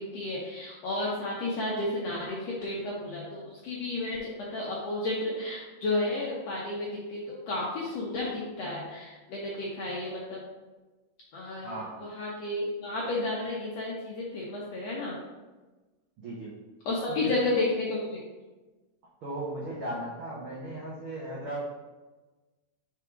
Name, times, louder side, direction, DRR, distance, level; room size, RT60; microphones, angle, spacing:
voice 1, 0.1-10.4 11.3-15.2 16.8-18.2, left 2 dB, 75° left, -4 dB, 1.5 m, -32 dB
voice 2, 11.6-12.0 16.2-16.5 17.1-17.3 19.2-21.6, right 1 dB, 80° right, -6 dB, 1.2 m, -36 dB
4.8 x 4.6 x 4.9 m, 1.2 s
omnidirectional pair, 3.9 m